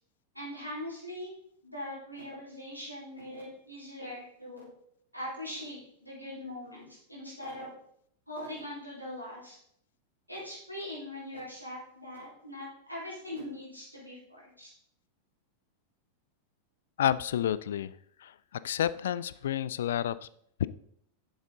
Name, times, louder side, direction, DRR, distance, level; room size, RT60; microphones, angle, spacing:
voice 1, 0.3-1.3 1.6-4.7 5.1-7.7 8.3-9.6 10.3-14.7, left 1 dB, 90° right, -6 dB, 3.8 m, -41 dB
voice 2, 17.0-17.9 18.2-18.3 18.6-20.3 20.6-20.7, left 10 dB, 60° left, 17 dB, 0.3 m, -29 dB
7.3 x 7.2 x 3.7 m, 0.68 s
figure-of-eight pair, 90°, 0 cm